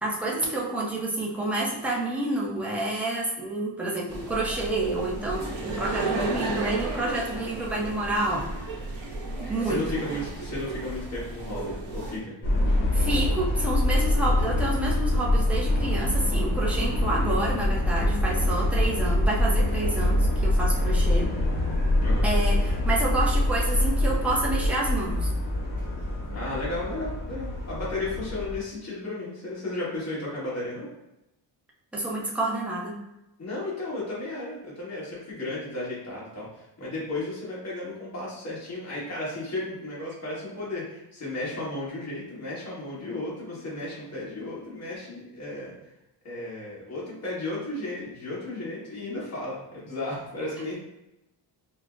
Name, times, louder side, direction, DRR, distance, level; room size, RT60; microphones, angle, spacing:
voice 1, 0.0-8.5 9.5-10.0 12.9-21.3 22.2-25.3 31.9-33.0, right 2 dB, 5° right, -4 dB, 0.5 m, -29 dB
sound 1, 4.1-12.2, right 2 dB, 85° right, 0.9 m, -34 dB
voice 2, 9.4-12.3 22.0-22.3 26.3-30.9 33.4-45.7 46.2-50.7, left 2 dB, 35° left, -7 dB, 1.4 m, -34 dB
Subway metro underground, 12.4-28.6, left 1 dB, 60° left, 1.2 m, -25 dB
5.0 x 2.1 x 2.4 m, 0.88 s
wide cardioid pair, 170°, 45 cm